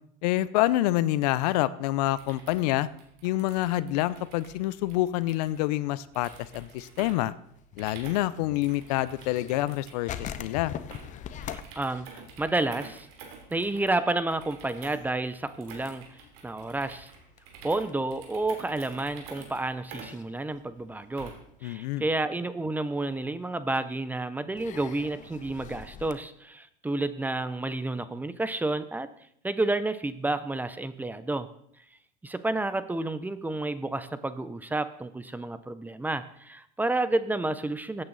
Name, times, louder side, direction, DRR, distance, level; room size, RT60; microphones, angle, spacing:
voice 1, 0.2-2.9 3.2-7.3 7.8-10.7 21.6-22.0, left 16 dB, 80° left, 17 dB, 0.6 m, -27 dB
sound 1, 2.0-21.6, right 5 dB, 70° right, 3.1 m, -49 dB
sound 2, 7.6-9.8 10.1-13.3 13.6-13.7 14.1-14.4 14.7-18.2 18.9-19.0 20.1-20.3 20.8-21.5 22.0-22.1 23.5-23.6 24.6-26.1, left 9 dB, 40° left, 0.8 m, -42 dB
voice 2, 11.8-13.1 13.5-16.0 16.4-17.1 17.6-21.3 21.6-29.1 29.4-31.5 32.2-38.0, right 2 dB, 10° right, 13 dB, 0.6 m, -30 dB
15.5 x 8.8 x 4.0 m, 0.70 s
supercardioid pair, 120°, 20 cm